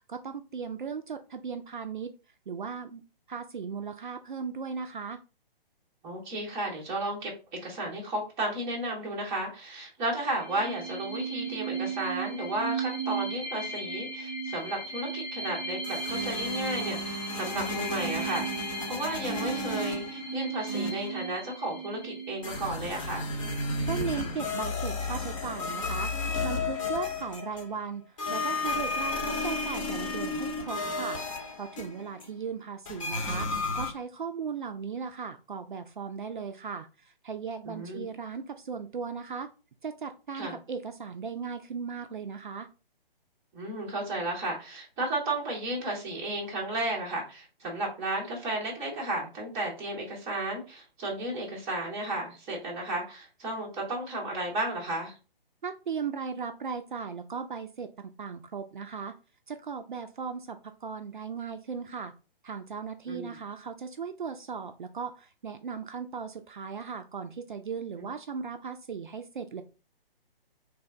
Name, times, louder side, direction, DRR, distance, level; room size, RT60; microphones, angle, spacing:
voice 1, 0.1-2.1 2.5-3.0 3.3-5.2 23.9-33.5 33.7-39.5 39.8-42.7 55.6-59.1 59.5-62.1 62.4-69.6, right 6 dB, 55° right, 7 dB, 0.4 m, -37 dB
voice 2, 6.0-7.3 7.6-23.3 37.6-38.1 40.3-40.5 43.5-55.1 63.1-63.3 68.0-68.1, right 1 dB, 10° right, -3 dB, 0.6 m, -33 dB
sound 1, 10.2-23.6, right 4 dB, 85° left, 1.1 m, -36 dB
sound 2, 15.8-20.3 20.7-21.2 22.4-27.8 28.2-32.2 32.9-33.9, left 3 dB, 35° left, 0.7 m, -33 dB
3.3 x 2.1 x 3.6 m, 0.32 s
figure-of-eight pair, 135°, 29 cm